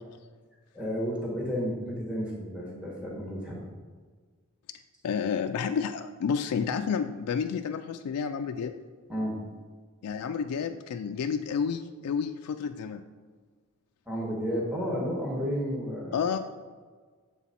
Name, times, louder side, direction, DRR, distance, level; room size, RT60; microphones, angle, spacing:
voice 1, 0.7-3.6 9.1-9.4 14.1-16.3, equal, 5° right, -4 dB, 1.3 m, -32 dB
voice 2, 5.0-8.7 10.0-13.0 16.1-16.4, left 6 dB, 85° left, 6 dB, 0.3 m, -30 dB
7.2 x 3.9 x 4.2 m, 1.5 s
head